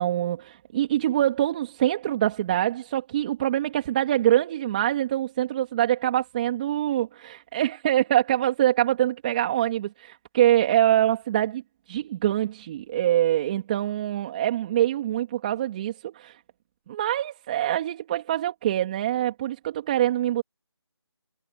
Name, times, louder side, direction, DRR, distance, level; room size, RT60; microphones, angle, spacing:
voice 1, 0.0-11.6 11.9-16.4 16.9-20.4, right 12 dB, 20° right, 3.0 m, -24 dB
figure-of-eight pair, 165°, 14 cm